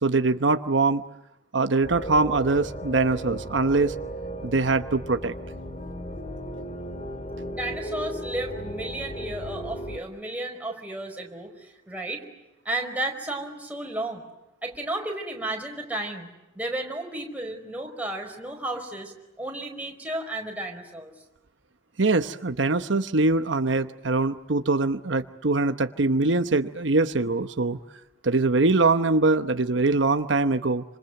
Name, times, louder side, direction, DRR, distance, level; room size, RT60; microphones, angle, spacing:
voice 1, 0.0-1.0 1.5-3.9 4.4-5.3 22.0-27.8 28.2-30.8, right 3 dB, 80° right, 9 dB, 1.0 m, -23 dB
sound 1, 1.8-10.0, right 1 dB, 35° left, 2.6 m, -35 dB
voice 2, 7.5-12.2 12.6-14.2 14.6-16.3 16.5-21.1, right 1 dB, 10° right, 1 dB, 4.8 m, -33 dB
28.0 x 26.5 x 7.9 m, 0.94 s
head